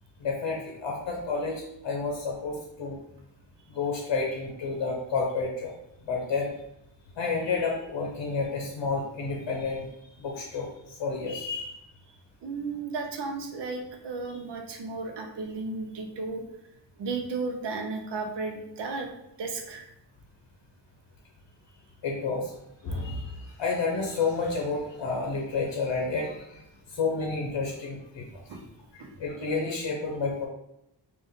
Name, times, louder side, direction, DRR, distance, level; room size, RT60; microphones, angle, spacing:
voice 1, 0.2-3.0 3.7-5.7 6.1-6.5 7.2-9.9 10.2-11.8 22.0-22.5 22.8-26.6 26.9-28.2 28.9-30.5, left 4 dB, 75° left, 0 dB, 0.7 m, -30 dB
voice 2, 12.4-16.4 17.0-19.1 19.4-19.9 22.9-23.0 28.5-28.7 29.0-29.1, right 3 dB, 65° right, 4 dB, 0.7 m, -34 dB
3.8 x 2.5 x 3.5 m, 0.82 s
wide cardioid pair, 175°, 45 cm